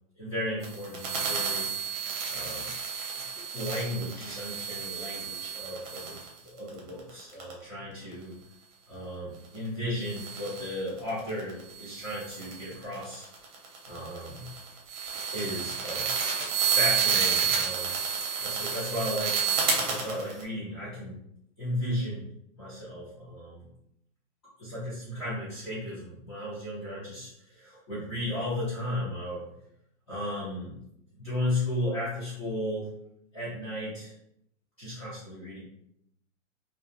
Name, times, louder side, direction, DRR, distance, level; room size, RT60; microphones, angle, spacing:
voice 1, 0.2-1.7 2.3-2.7 3.3-6.2 6.4-8.4 8.9-13.3 13.9-14.5 15.3-16.1 16.7-18.0 18.4-21.2 21.6-22.3 22.6-23.7 24.6-29.5 30.1-30.7 31.2-32.9 33.3-34.1 34.8-35.6, left 1 dB, 20° left, -12 dB, 0.6 m, -35 dB
sound 1, 0.6-7.5 10.0-20.4, right 6 dB, 50° right, 0.8 m, -30 dB
2.3 x 2.1 x 2.6 m, 0.75 s
supercardioid pair, 180°, 39 cm